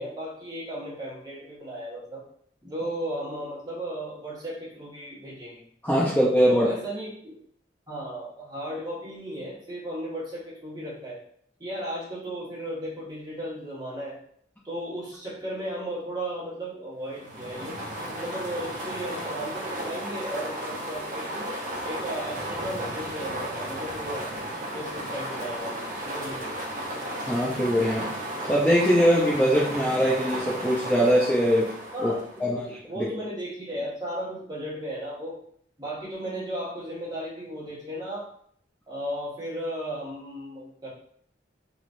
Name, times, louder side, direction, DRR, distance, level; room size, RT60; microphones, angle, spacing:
voice 1, 0.0-2.2 2.6-5.6 6.5-7.3 7.9-11.2 11.6-14.2 14.6-17.8 18.1-21.5 21.8-24.3 24.7-26.6 31.9-32.6 32.8-35.4 35.8-38.3 38.9-40.9, right 1 dB, 25° right, -8 dB, 1.4 m, -35 dB
voice 2, 5.8-6.7 27.3-28.1 28.5-31.7 32.0-32.1 32.4-32.7 33.0-33.1, equal, 10° left, -6 dB, 0.5 m, -22 dB
sound 1, 17.1-32.6, right 1 dB, 45° right, 0.7 m, -34 dB
3.1 x 3.0 x 2.5 m, 0.64 s
head